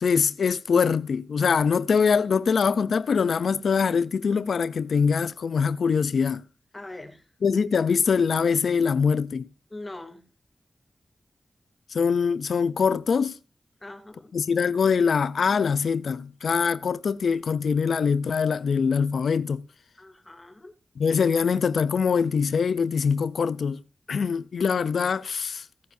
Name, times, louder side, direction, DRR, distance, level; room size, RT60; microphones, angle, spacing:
voice 1, 0.0-6.4 7.4-9.5 11.9-13.4 14.3-19.6 21.0-23.8 24.1-25.6, left 6 dB, 90° left, 0.5 m, -23 dB
voice 2, 6.7-7.2 9.7-10.2 13.8-14.3 20.0-20.7, left 2 dB, 25° left, 2.6 m, -42 dB
17.0 x 9.3 x 2.6 m
wide cardioid pair, 70°, 0 cm